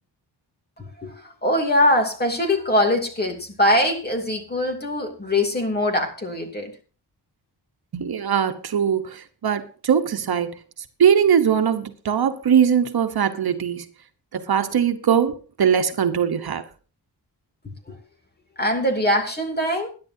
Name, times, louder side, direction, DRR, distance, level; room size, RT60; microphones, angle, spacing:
voice 1, 1.4-6.7 18.6-19.9, left 1 dB, 25° left, 2.8 m, -22 dB
voice 2, 7.9-10.6 11.0-13.8 14.3-16.6, right 8 dB, 60° right, 1.2 m, -21 dB
21.5 x 10.5 x 2.8 m
wide cardioid pair, 180°, 41 cm